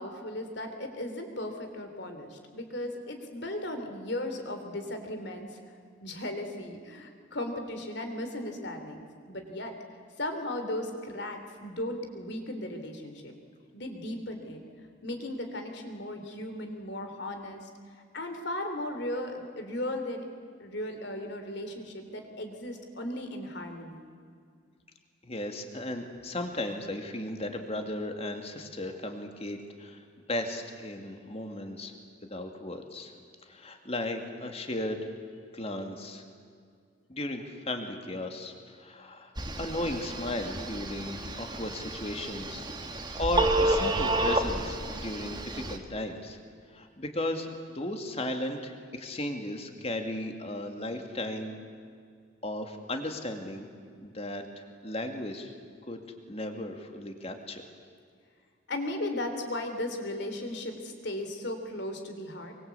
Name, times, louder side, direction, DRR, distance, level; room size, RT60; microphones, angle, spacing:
voice 1, 0.0-5.6 6.0-13.3 13.7-14.6 15.0-20.2 20.6-24.0 42.8-43.1 58.7-62.5, left 1 dB, 60° left, 6 dB, 3.4 m, -36 dB
voice 2, 25.2-30.0 30.3-31.9 32.2-33.1 33.5-35.1 35.5-36.2 37.1-39.3 39.6-46.4 46.7-51.6 52.4-53.7 54.0-55.5 55.9-56.0 56.3-57.6, left 1 dB, 30° left, 5 dB, 2.4 m, -35 dB
Telephone, 39.4-45.7, right 2 dB, 20° right, 1.7 m, -30 dB
24.5 x 23.5 x 8.4 m, 2.2 s
head